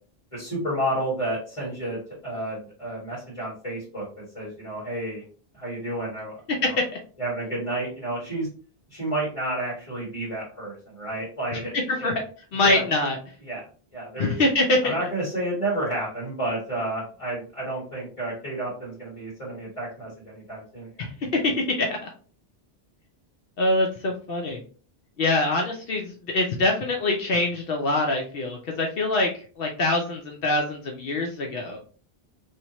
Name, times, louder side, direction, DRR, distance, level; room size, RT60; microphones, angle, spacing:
voice 1, 0.3-5.2 5.5-6.8 7.2-8.5 8.9-11.7 12.0-12.1 12.5-12.8 13.4-13.6 13.9-14.4 14.8-21.1, right 1 dB, 30° left, -8 dB, 2.0 m, -31 dB
voice 2, 12.5-13.2 14.2-14.9 21.0-22.0 23.6-24.6 25.2-31.8, left 2 dB, 70° left, 1 dB, 0.8 m, -24 dB
3.2 x 2.7 x 2.9 m, 0.40 s
omnidirectional pair, 1.0 m